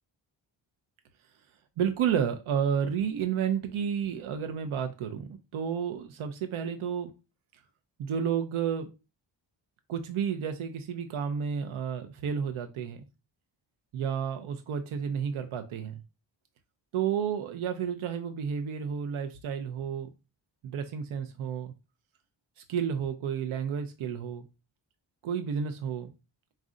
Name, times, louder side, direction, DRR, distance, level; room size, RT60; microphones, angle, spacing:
voice 1, 1.8-7.1 8.0-8.9 9.9-13.0 13.9-16.0 16.9-20.1 20.6-21.7 22.7-24.4 25.2-26.1, right 7 dB, 80° right, 0.6 m, -31 dB
4.1 x 2.5 x 3.6 m
cardioid pair, 70°, 48 cm